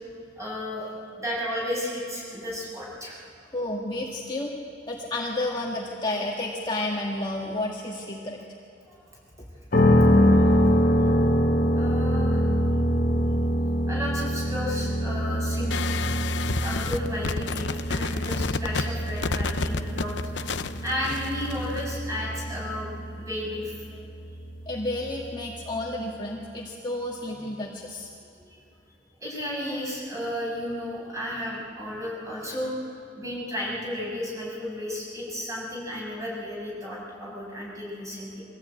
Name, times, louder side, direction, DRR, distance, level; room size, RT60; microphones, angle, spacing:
voice 1, 0.4-3.2 8.9-9.0 11.8-12.8 13.9-15.9 16.6-20.1 20.8-22.9 23.2-24.0 28.5-28.6 29.2-38.4, left 1 dB, 15° right, -4 dB, 7.2 m, -33 dB
voice 2, 3.5-4.5 4.9-8.4 24.7-28.1, left 1 dB, 25° left, -2 dB, 1.8 m, -31 dB
sound 1, 9.7-25.6, equal, 50° left, 1.2 m, -25 dB
sound 2, 15.7-21.8, left 4 dB, 80° left, 0.7 m, -31 dB
23.5 x 16.0 x 8.8 m, 2.6 s
head